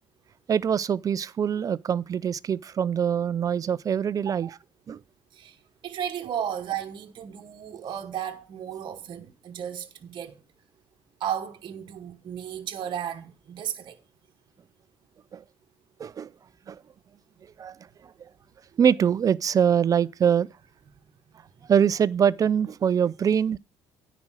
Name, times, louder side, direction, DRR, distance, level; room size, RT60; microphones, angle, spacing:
voice 1, 0.5-4.5 4.9-5.0 15.3-15.4 16.0-16.3 16.7-16.8 17.6-17.7 18.8-20.5 21.7-23.6, right 8 dB, 40° right, 0.4 m, -23 dB
voice 2, 4.3-4.6 5.3-5.6 5.8-10.4 11.2-14.0, right 9 dB, 55° right, 1.1 m, -34 dB
9.6 x 5.0 x 6.2 m
cardioid pair, 90°, 10 cm